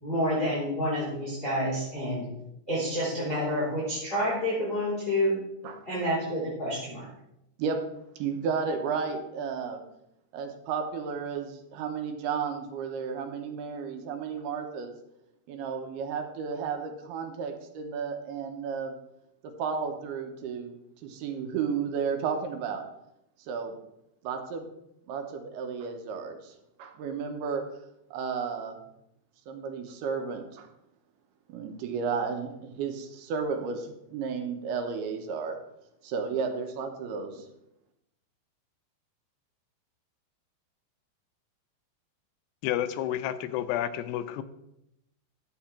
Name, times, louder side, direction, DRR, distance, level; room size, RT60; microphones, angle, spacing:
voice 1, 0.0-2.2 2.7-5.4 5.9-7.1, equal, 15° left, -8 dB, 3.7 m, -28 dB
voice 2, 8.2-9.8 10.3-14.9 15.5-18.9 19.6-22.8 23.5-23.7 24.2-24.7 25.1-27.6 28.1-28.8 29.5-30.7 31.5-35.6 36.0-37.5, right 6 dB, 80° right, 5 dB, 3.0 m, -33 dB
voice 3, 42.6-44.4, left 11 dB, 90° left, 11 dB, 2.8 m, -30 dB
12.0 x 7.9 x 4.4 m, 0.83 s
omnidirectional pair, 4.7 m